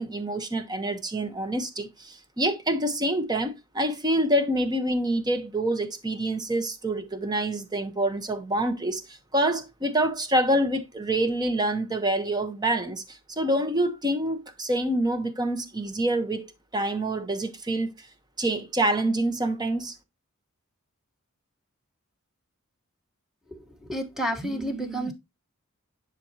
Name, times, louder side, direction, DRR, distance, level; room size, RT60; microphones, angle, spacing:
voice 1, 0.0-9.0 9.3-17.9 18.4-19.9, right 1 dB, 20° right, 1.1 m, -26 dB
voice 2, 23.9-25.1, right 1 dB, ahead, 1.3 m, -30 dB
10.5 x 4.3 x 2.9 m
head